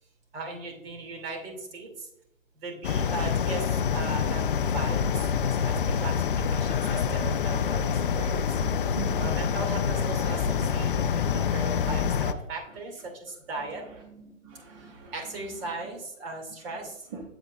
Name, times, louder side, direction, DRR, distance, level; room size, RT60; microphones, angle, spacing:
voice 1, 0.3-2.1 2.5-6.2 6.5-8.8 9.2-13.8 14.8-17.1, right 2 dB, 45° right, 2 dB, 2.5 m, -38 dB
sound 1, 2.8-12.3, left 7 dB, 45° left, 0.4 m, -26 dB
voice 2, 6.6-7.1 7.4-7.7 8.6-9.4 11.0-11.5 14.1-15.1 17.1-17.2, right 4 dB, 20° right, 1 dB, 0.6 m, -42 dB
7.8 x 7.6 x 2.4 m, 0.82 s
hypercardioid pair, 145°, 39 cm